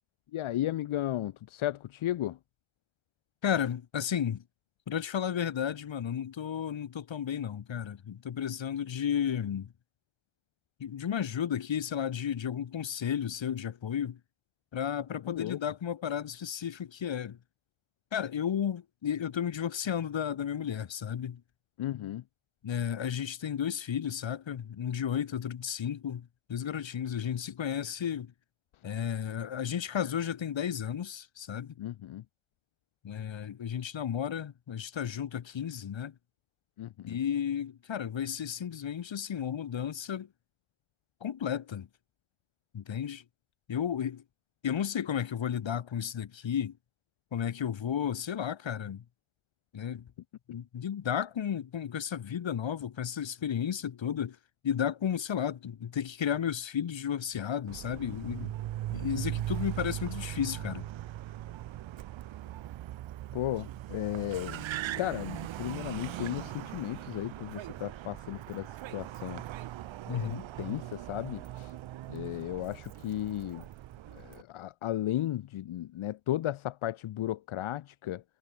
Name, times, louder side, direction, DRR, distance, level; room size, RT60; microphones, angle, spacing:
voice 1, 0.3-2.4 15.2-15.6 21.8-22.2 31.8-32.2 36.8-37.2 63.3-64.7 65.0-69.4 70.1-71.7 72.1-73.6 74.1-78.2, left 13 dB, 85° left, 0.8 m, -35 dB
voice 2, 3.4-4.4 4.9-9.7 10.8-14.2 14.7-17.4 18.1-21.4 22.6-28.3 28.8-31.7 33.0-36.1 37.0-40.3 41.2-41.9 42.7-43.2 43.7-44.2 44.6-46.8 47.3-49.0 49.7-50.1 50.5-54.4 54.6-58.5 58.9-60.9 70.1-70.5, left 8 dB, 70° left, 1.6 m, -33 dB
Car, 57.7-74.4, right 13 dB, 70° right, 0.6 m, -40 dB
cardioid pair, 80°, 47 cm